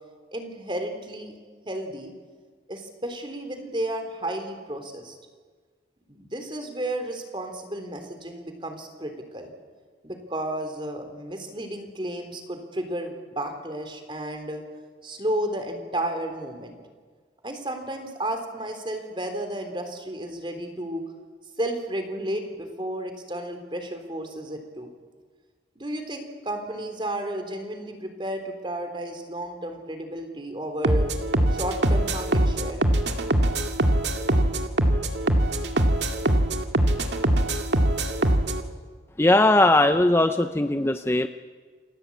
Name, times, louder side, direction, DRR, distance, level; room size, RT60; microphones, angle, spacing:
voice 1, 0.3-1.4 1.7-2.1 2.7-5.2 6.1-9.5 10.0-14.6 15.0-16.8 17.4-21.0 21.6-24.9 25.8-31.1 31.5-32.8, right 1 dB, 30° right, 6 dB, 3.7 m, -32 dB
sound 1, 30.8-38.6, right 1 dB, 80° right, 2.1 m, -22 dB
voice 2, 39.2-41.3, left 2 dB, 15° left, 8 dB, 0.7 m, -19 dB
29.0 x 19.5 x 8.7 m, 1.5 s
head